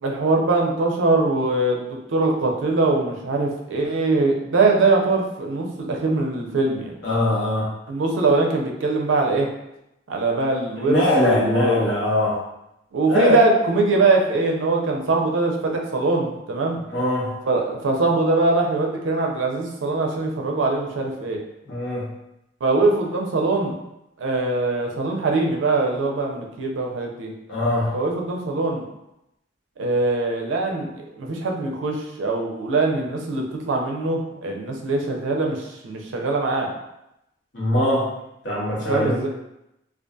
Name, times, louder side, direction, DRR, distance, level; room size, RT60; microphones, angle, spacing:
voice 1, 0.0-7.0 7.9-9.5 10.1-11.9 12.9-16.8 17.5-21.4 22.6-23.7 24.2-27.3 27.9-28.8 29.8-30.9 31.2-36.7 38.9-39.3, right 3 dB, 85° right, 1 dB, 0.5 m, -22 dB
voice 2, 7.0-7.7 10.8-12.4 13.1-13.4 16.9-17.3 21.7-22.1 27.5-27.9 37.5-38.1 38.4-39.3, left 1 dB, 65° left, -7 dB, 1.0 m, -21 dB
2.5 x 2.3 x 2.3 m, 0.86 s
head